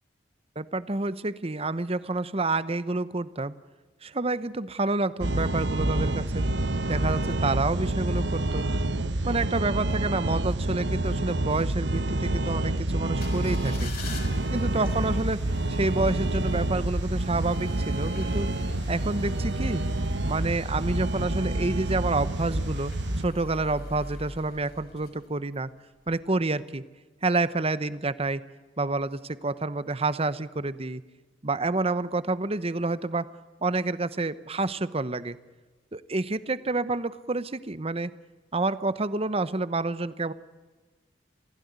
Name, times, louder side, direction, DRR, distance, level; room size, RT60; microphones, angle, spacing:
voice 1, 0.6-3.5 4.0-6.5 6.9-8.7 9.2-13.9 14.5-15.4 15.7-18.5 18.9-19.8 20.2-22.9 23.2-25.7 26.1-26.8 27.2-28.4 28.8-31.0 31.4-33.3 33.6-35.4 35.9-38.1 38.5-40.3, right 2 dB, 35° right, 15 dB, 0.9 m, -28 dB
sound 1, 5.2-23.3, right 1 dB, 70° right, 1.2 m, -28 dB
sound 2, 13.1-25.6 26.0-26.1, left 1 dB, 55° left, 5.8 m, -40 dB
26.5 x 16.5 x 9.5 m, 1.3 s
head